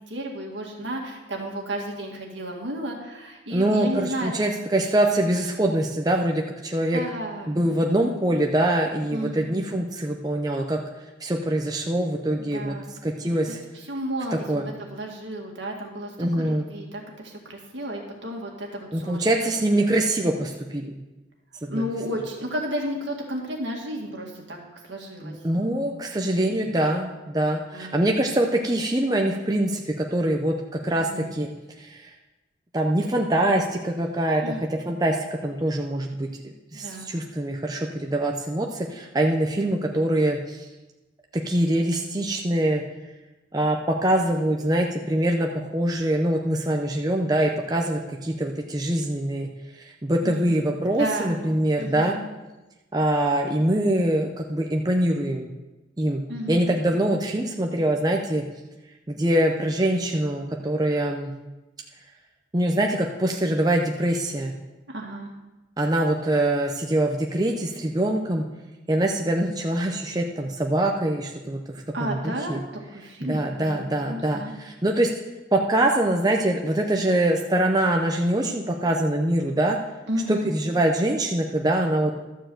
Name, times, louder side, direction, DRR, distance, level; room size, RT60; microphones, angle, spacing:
voice 1, 0.1-4.3 6.9-7.6 9.1-9.5 12.4-12.9 13.5-19.9 21.7-24.6 24.8-25.3 26.1-26.4 27.7-28.0 31.0-31.3 34.4-34.6 36.7-37.1 50.2-50.6 51.0-51.5 51.8-52.2 56.3-56.7 64.9-65.3 71.9-72.6 72.9-74.5 80.1-80.5, right 1 dB, 70° right, 0 dB, 2.0 m, -33 dB
voice 2, 3.5-7.0 7.5-10.8 11.2-12.7 13.0-13.6 14.5-14.7 16.2-16.7 18.9-21.0 21.6-21.8 25.2-30.5 30.8-31.5 31.8-32.1 32.7-34.5 34.9-35.2 35.4-40.7 41.3-42.8 43.5-49.5 49.7-52.2 52.9-55.5 56.0-56.2 56.5-58.4 59.1-61.3 62.5-64.5 65.8-68.4 68.9-72.6 73.2-75.1 75.5-79.8 80.3-82.1, right 1 dB, 20° right, 1 dB, 0.6 m, -24 dB
12.0 x 4.6 x 7.7 m, 1.1 s
head